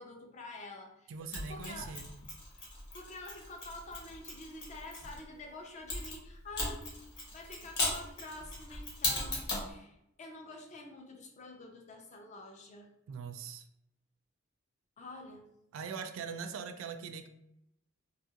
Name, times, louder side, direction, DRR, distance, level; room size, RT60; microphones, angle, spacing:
voice 1, 0.0-1.1 1.5-2.0 2.9-6.8 7.2-12.9 15.0-15.5, left 2 dB, 35° left, 3 dB, 0.4 m, -48 dB
voice 2, 1.1-2.1 13.1-13.7 15.7-17.3, right 5 dB, 75° right, 9 dB, 0.3 m, -41 dB
Mechanisms, 1.3-5.2 5.9-9.7, left 2 dB, 55° left, 1.0 m, -38 dB
2.7 x 2.4 x 2.7 m, 0.80 s
head